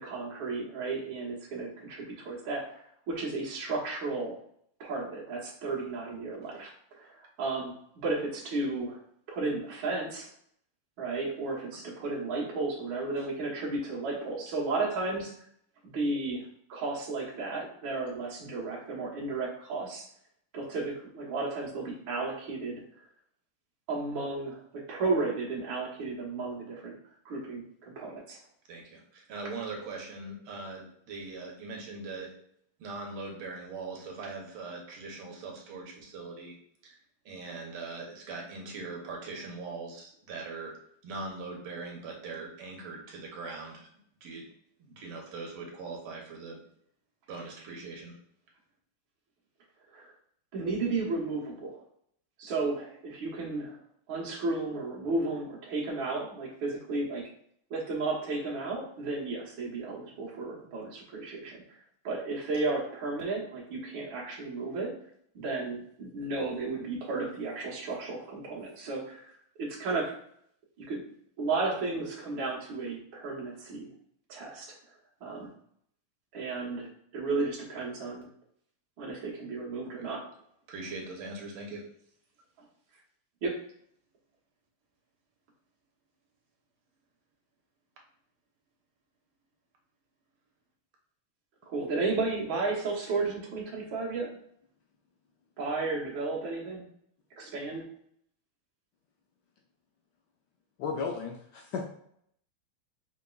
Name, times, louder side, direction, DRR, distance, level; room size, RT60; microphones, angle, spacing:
voice 1, 0.0-4.4 4.8-9.0 9.3-10.3 11.0-15.3 15.8-20.1 20.5-22.8 23.9-26.9 27.3-28.4 49.9-50.1 50.5-51.8 52.4-53.8 54.1-57.2 57.7-61.8 62.0-65.0 65.3-69.3 69.6-70.2 70.8-71.1 71.4-73.9 74.3-74.7 75.2-75.5 76.3-78.3 79.0-80.3 83.4-83.6 91.7-94.3 95.6-96.9 97.4-97.9, right 3 dB, 70° right, -4 dB, 2.0 m, -33 dB
voice 2, 28.7-32.3 32.8-36.6 36.8-37.0 37.3-40.7 41.0-43.9 44.2-44.5 44.8-46.6 47.3-48.1 80.0-80.1 80.7-81.8, right 3 dB, 85° right, 0 dB, 1.9 m, -41 dB
voice 3, 100.8-101.9, left 5 dB, 75° left, 1 dB, 0.9 m, -34 dB
5.7 x 3.0 x 2.4 m, 0.68 s
omnidirectional pair, 2.4 m